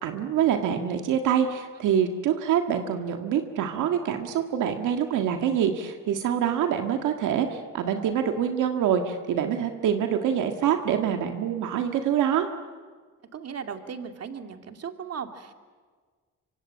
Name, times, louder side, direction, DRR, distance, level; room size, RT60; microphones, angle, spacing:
voice 1, 0.0-12.5, right 9 dB, 85° right, 5 dB, 1.8 m, -25 dB
voice 2, 13.3-15.5, right 6 dB, 55° right, 6 dB, 2.5 m, -37 dB
25.5 x 25.0 x 8.8 m, 1.5 s
cardioid pair, 90°, 30 cm